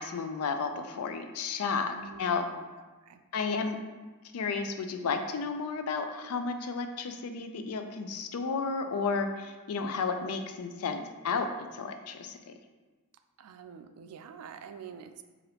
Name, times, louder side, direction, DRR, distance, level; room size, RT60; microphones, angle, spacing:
voice 1, 0.0-1.9 2.2-2.5 3.3-4.0 4.3-12.5, left 4 dB, 75° left, 7 dB, 0.4 m, -32 dB
voice 2, 1.9-2.6 3.0-3.2 13.4-15.2, right 6 dB, 80° right, 8 dB, 0.3 m, -47 dB
4.8 x 2.5 x 2.9 m, 1.3 s
head